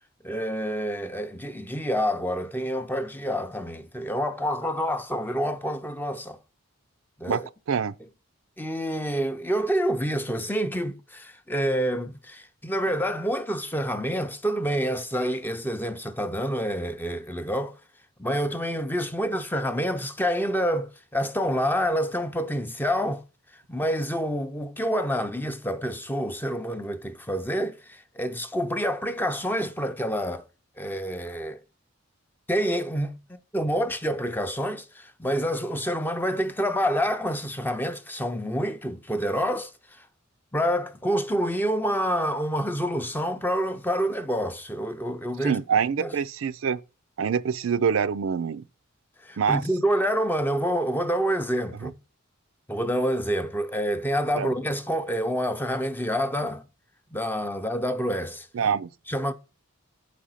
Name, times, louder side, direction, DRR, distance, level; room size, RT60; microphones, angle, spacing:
voice 1, 0.2-6.4 7.2-7.5 8.6-17.8 18.2-23.2 23.7-30.5 30.8-31.6 32.5-39.7 40.0-40.1 40.5-45.6 46.0-46.1 49.2-52.0 52.7-56.6 57.1-58.5 59.1-59.3, equal, 10° left, 0.5 m, -27 dB
voice 2, 45.4-46.8 47.2-48.6 49.4-49.6 51.8-51.9 54.3-54.5 58.5-58.9, right 6 dB, 70° right, 0.4 m, -25 dB
7.7 x 5.1 x 5.6 m
head